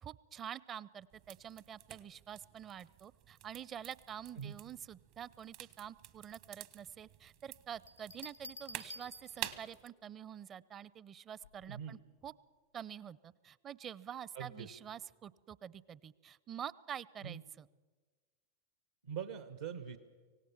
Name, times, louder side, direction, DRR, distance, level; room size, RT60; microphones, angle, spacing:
voice 1, 0.0-12.3 12.7-17.7, right 9 dB, 30° right, 22 dB, 0.6 m, -47 dB
sound 1, 1.1-9.9, right 13 dB, 55° right, 1.1 m, -50 dB
sound 2, 7.9-9.8 11.4-11.8, left 1 dB, 80° left, 0.6 m, -51 dB
voice 2, 11.7-12.0 14.3-14.7 17.2-17.4 19.0-20.0, right 8 dB, 75° right, 11 dB, 1.2 m, -43 dB
25.0 x 17.5 x 7.2 m, 1.4 s
figure-of-eight pair, 90°, 0 cm